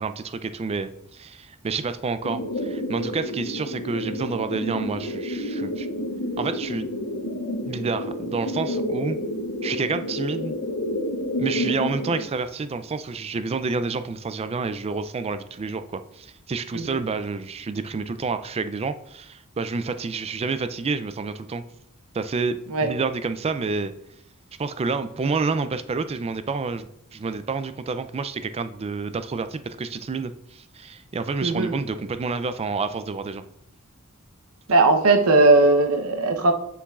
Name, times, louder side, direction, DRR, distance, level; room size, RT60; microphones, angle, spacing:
voice 1, 0.0-5.9 6.4-6.9 7.6-9.2 9.6-10.5 11.4-21.6 22.1-23.9 24.6-33.4, right 4 dB, 25° right, 11 dB, 0.4 m, -29 dB
sound 1, 2.2-12.2, left 1 dB, 85° left, 1.0 m, -29 dB
voice 2, 31.4-31.7 34.7-36.5, right 2 dB, 70° right, 6 dB, 0.8 m, -18 dB
7.0 x 7.0 x 2.4 m, 0.75 s
head